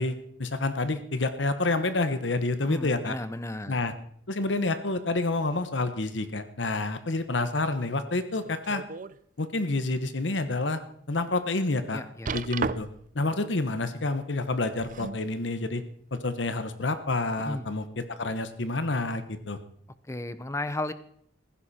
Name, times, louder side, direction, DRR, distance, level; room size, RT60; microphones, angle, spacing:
voice 1, 0.0-3.2 3.7-3.9 4.3-8.8 9.4-10.8 11.1-12.0 12.3-12.9 13.1-15.8 16.1-19.6, left 2 dB, 90° left, 10 dB, 1.3 m, -28 dB
voice 2, 2.7-3.8 11.9-12.3 17.4-17.7 20.1-20.9, left 1 dB, 15° left, 13 dB, 0.6 m, -34 dB
sound 1, 8.3-9.2 9.7-9.8 10.4-10.5 12.3-13.1 14.5-15.3 16.2-16.3, right 4 dB, 45° right, 0.5 m, -34 dB
15.5 x 15.5 x 4.3 m, 0.65 s
head